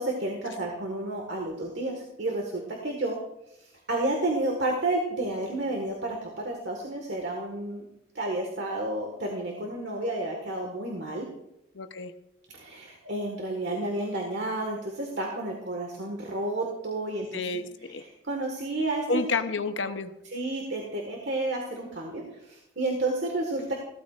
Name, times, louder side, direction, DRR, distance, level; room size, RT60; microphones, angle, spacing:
voice 1, 0.0-3.2 3.9-7.8 8.1-11.3 12.5-17.4 18.2-19.1 20.3-23.7, right 2 dB, 65° right, 1 dB, 1.6 m, -31 dB
voice 2, 11.7-12.1 17.3-18.0 19.1-20.1, left 3 dB, 80° left, 9 dB, 0.8 m, -30 dB
15.5 x 13.0 x 2.5 m, 0.85 s
head